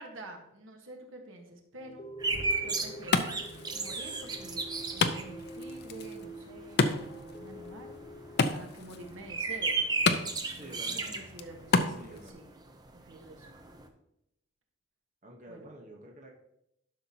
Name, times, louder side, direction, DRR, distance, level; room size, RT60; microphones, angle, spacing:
voice 1, 0.0-2.1 2.6-3.4 3.7-7.9 8.5-9.8 10.5-12.5 12.9-13.5 15.5-15.7, right 1 dB, 80° right, 2 dB, 1.4 m, -48 dB
sound 1, 1.8-8.5, right 1 dB, 35° left, 0.9 m, -46 dB
sound 2, 2.2-12.3 12.6-12.7 12.9-13.9, right 3 dB, 20° right, 0.6 m, -34 dB
Wood, 2.3-12.3, left 4 dB, 55° left, 0.5 m, -33 dB
voice 2, 10.5-11.1 11.8-12.4 15.2-16.3, right 1 dB, 40° right, -1 dB, 1.0 m, -49 dB
12.0 x 5.8 x 2.9 m, 0.78 s
head